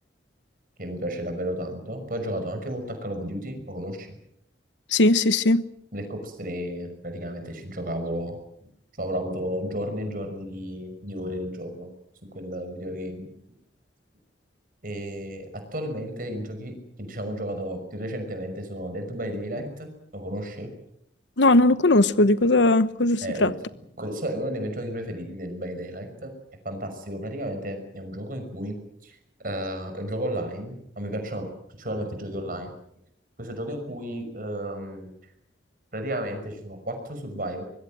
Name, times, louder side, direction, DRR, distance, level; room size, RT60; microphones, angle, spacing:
voice 1, 0.8-4.1 5.9-8.4 9.0-11.9 12.3-13.3 14.8-15.4 15.7-20.7 23.2-23.5 24.0-26.3 26.6-28.8 29.0-29.2 29.4-31.5 31.8-32.7 33.4-35.1 35.9-37.6, equal, 50° right, 5.9 m, -33 dB
voice 2, 4.9-5.6 21.4-23.5, left 2 dB, 85° left, 1.1 m, -19 dB
24.0 x 21.5 x 7.6 m
head